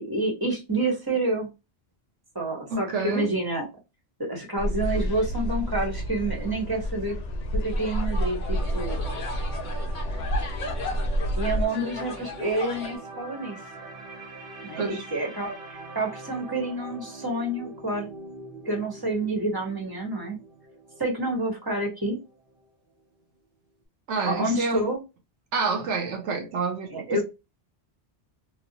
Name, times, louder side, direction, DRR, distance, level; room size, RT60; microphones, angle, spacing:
voice 1, 0.0-1.5 2.3-3.7 4.2-7.2 7.5-9.0 11.4-13.6 14.6-18.1 18.6-20.4 21.0-22.2 24.3-25.0 26.9-27.2, right 2 dB, 20° right, 0.9 m, -28 dB
voice 2, 2.7-3.3 14.8-15.0 24.1-24.8 25.5-27.2, right 4 dB, 80° right, 1.0 m, -28 dB
sound 1, 4.6-11.7, equal, 80° left, 1.0 m, -29 dB
sound 2, 7.7-13.0, left 3 dB, 50° left, 0.7 m, -37 dB
sound 3, 8.5-22.7 23.0-23.2, right 2 dB, 55° right, 0.8 m, -44 dB
3.0 x 2.1 x 2.7 m
omnidirectional pair, 1.2 m